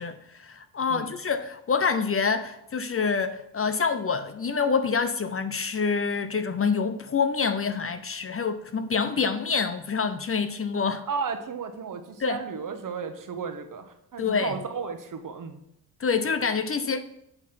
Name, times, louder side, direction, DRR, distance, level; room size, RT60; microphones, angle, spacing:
voice 1, 0.0-11.0 12.2-12.4 14.2-14.6 16.0-17.0, left 5 dB, 35° left, 0.6 m, -26 dB
voice 2, 11.1-15.6, right 5 dB, 50° right, 1.2 m, -34 dB
8.9 x 4.0 x 5.7 m
cardioid pair, 70°, 40 cm